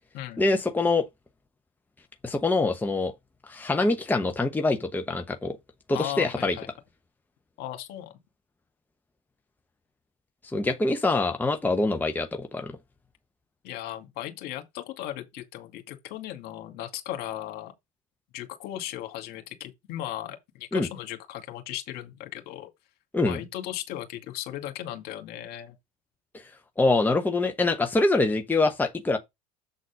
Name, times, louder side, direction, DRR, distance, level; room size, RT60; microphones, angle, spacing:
voice 1, 0.4-1.1 2.2-3.1 3.5-5.6 5.9-6.6 10.4-12.8 20.7-20.9 23.1-23.4 26.8-29.2, left 2 dB, 10° left, 1.0 m, -24 dB
voice 2, 5.9-6.7 7.6-8.1 13.6-17.7 18.3-22.7 23.3-25.8, left 13 dB, 55° left, 2.2 m, -37 dB
7.7 x 4.0 x 5.3 m
hypercardioid pair, 85°, 19 cm